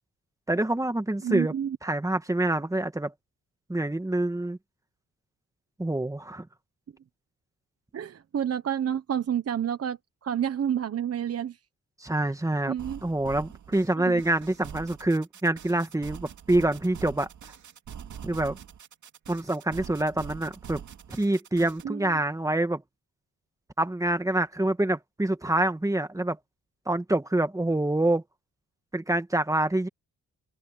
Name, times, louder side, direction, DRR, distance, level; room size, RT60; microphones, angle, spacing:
voice 1, 0.5-1.5 1.8-3.1 3.7-4.6 5.8-6.5 12.0-12.7 13.0-17.3 18.2-18.6 19.3-20.8 21.1-22.8 23.8-26.4 26.9-28.2 28.9-29.9, right 1 dB, 10° right, 1.8 m, -26 dB
voice 2, 1.2-1.8 7.9-11.6 12.7-13.0 14.0-14.2 21.8-22.1, right 9 dB, 50° right, 1.1 m, -29 dB
sound 1, 12.8-21.8, right 8 dB, 65° right, 2.7 m, -44 dB
open air
cardioid pair, 115°, 31 cm